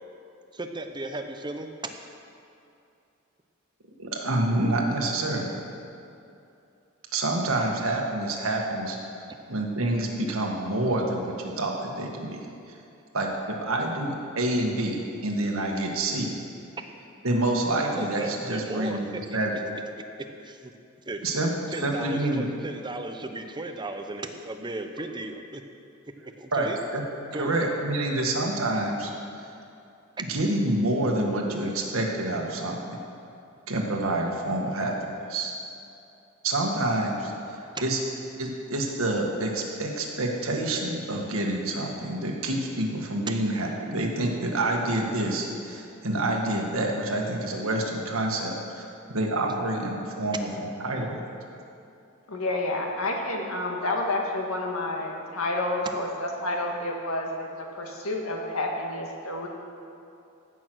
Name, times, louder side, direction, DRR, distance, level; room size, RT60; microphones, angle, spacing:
voice 1, 0.5-1.7 9.3-9.4 17.9-19.2 19.5-19.6 20.4-20.7 21.0-21.3 21.7-25.6 26.4-26.8 27.3-27.6, right 2 dB, 20° right, 6 dB, 0.7 m, -35 dB
voice 2, 4.0-5.5 7.1-9.0 9.5-12.4 13.1-16.3 17.2-19.1 19.3-19.5 21.2-21.5 21.8-22.5 26.5-27.0 27.4-29.1 30.3-32.8 33.7-34.9 35.3-35.5 36.4-38.0 38.4-50.5 50.8-51.2, right 1 dB, 75° right, 0 dB, 1.7 m, -27 dB
voice 3, 52.3-57.5 57.7-59.5, left 2 dB, 85° left, 1 dB, 1.8 m, -29 dB
15.5 x 6.3 x 6.2 m, 2.6 s
head